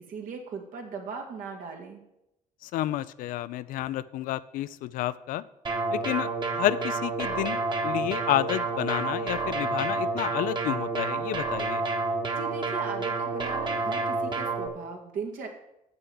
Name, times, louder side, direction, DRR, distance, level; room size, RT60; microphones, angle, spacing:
voice 1, 0.1-2.0 12.3-15.5, right 5 dB, 75° right, 2 dB, 2.1 m, -38 dB
voice 2, 2.6-5.4 5.9-11.8, left 14 dB, 85° left, 16 dB, 0.5 m, -30 dB
sound 1, 5.6-14.7, right 3 dB, 35° right, 1.4 m, -29 dB
7.2 x 6.7 x 7.7 m, 0.84 s
cardioid pair, 90°, 14 cm